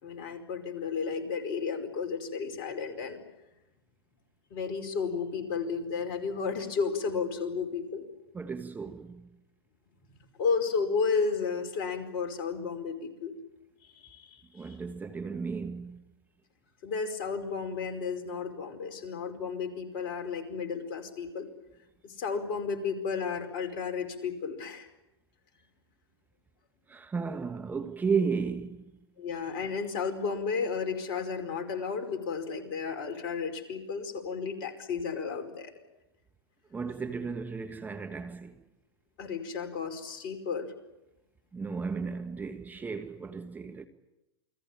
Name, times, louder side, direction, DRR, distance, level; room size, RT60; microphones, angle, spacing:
voice 1, 0.0-3.2 4.5-8.0 10.4-13.3 13.9-14.7 16.8-21.5 22.0-24.9 29.2-35.7 39.2-40.7, left 5 dB, 45° left, 5.0 m, -33 dB
voice 2, 8.3-9.3 14.5-16.0 26.9-28.8 36.7-38.6 41.5-43.9, right 5 dB, 15° right, 1.5 m, -34 dB
29.0 x 20.5 x 8.8 m
hypercardioid pair, 110°, 13 cm